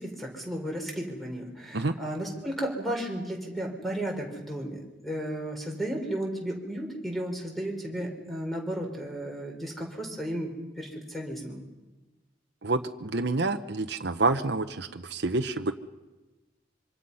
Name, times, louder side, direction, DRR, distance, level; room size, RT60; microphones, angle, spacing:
voice 1, 0.0-11.6, right 1 dB, ahead, 1 dB, 4.7 m, -34 dB
voice 2, 12.6-15.7, right 3 dB, 65° right, 6 dB, 1.0 m, -28 dB
26.0 x 25.5 x 5.7 m, 1.1 s
head